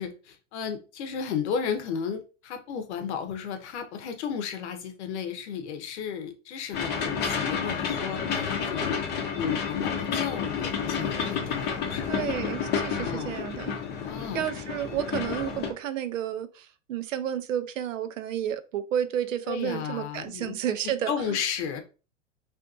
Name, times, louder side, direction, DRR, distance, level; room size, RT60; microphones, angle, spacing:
voice 1, 0.0-9.0 9.3-12.5 13.0-13.3 14.0-14.4 19.5-20.5 21.1-21.8, left 7 dB, 65° left, 0.7 m, -34 dB
sound 1, 6.7-15.7, left 6 dB, 30° left, 0.6 m, -30 dB
voice 2, 12.1-13.7 14.3-21.1, right 10 dB, 80° right, 0.5 m, -31 dB
2.5 x 2.5 x 2.4 m
hypercardioid pair, 105°, 38 cm